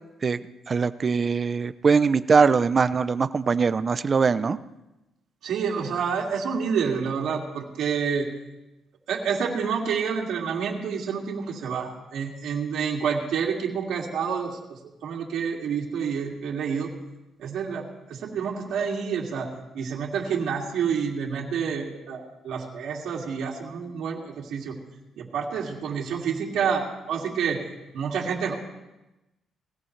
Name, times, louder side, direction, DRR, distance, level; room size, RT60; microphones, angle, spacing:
voice 1, 0.2-4.6, right 5 dB, 40° right, 14 dB, 0.6 m, -22 dB
voice 2, 5.4-8.3 9.1-14.6 15.0-16.9 17.4-24.8 25.2-27.6 27.9-28.5, right 6 dB, 75° right, -3 dB, 2.5 m, -28 dB
20.5 x 17.0 x 3.3 m, 0.98 s
cardioid pair, 90°, 0 cm